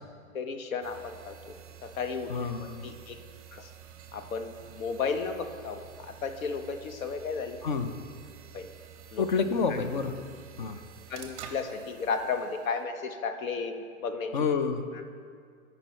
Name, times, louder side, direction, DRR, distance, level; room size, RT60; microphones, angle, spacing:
voice 1, 0.3-3.2 3.5-3.7 4.1-7.6 8.5-8.7 9.1-9.2 9.7-9.8 11.1-14.4, left 5 dB, 75° left, 7 dB, 0.9 m, -34 dB
sound 1, 0.8-12.8, right 8 dB, 25° right, 0.6 m, -49 dB
voice 2, 2.3-2.9 7.6-7.9 9.2-10.2 10.6-10.8 14.3-14.9, left 5 dB, 40° left, 9 dB, 0.4 m, -28 dB
9.2 x 5.3 x 4.3 m, 2.1 s
hypercardioid pair, 150°, 41 cm